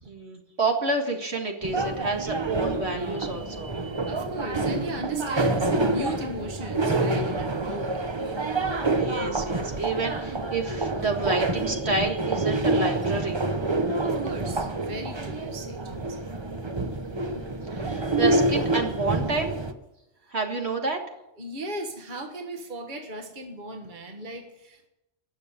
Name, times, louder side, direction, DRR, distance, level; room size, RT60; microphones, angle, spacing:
voice 1, 0.1-3.8 8.9-13.4 17.1-17.4 17.7-19.6 20.3-21.0, right 3 dB, 60° right, 3 dB, 2.0 m, -29 dB
sound 1, 1.6-19.7, right 2 dB, 25° right, 0.8 m, -27 dB
voice 2, 4.0-8.1 14.0-16.2 20.2-20.3 21.4-24.9, right 1 dB, 40° right, 3 dB, 1.7 m, -37 dB
19.5 x 7.0 x 8.2 m, 0.89 s
omnidirectional pair, 1.3 m